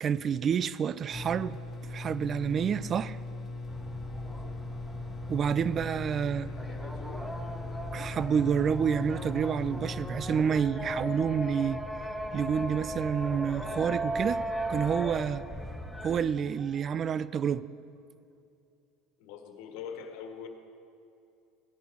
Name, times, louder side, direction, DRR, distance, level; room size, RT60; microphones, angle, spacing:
voice 1, 0.0-1.6 1.9-3.2 5.3-6.5 7.9-11.8 12.3-14.4 14.7-15.4 16.0-17.6, right 7 dB, 40° right, 0.4 m, -28 dB
sound 1, 1.1-10.4, left 2 dB, 25° left, 2.3 m, -39 dB
sound 2, 3.7-16.2, right 1 dB, ahead, 1.1 m, -37 dB
voice 2, 4.2-4.6 6.4-7.3 19.2-20.5, left 7 dB, 70° left, 1.6 m, -44 dB
16.0 x 11.0 x 5.3 m
hypercardioid pair, 80°, 0 cm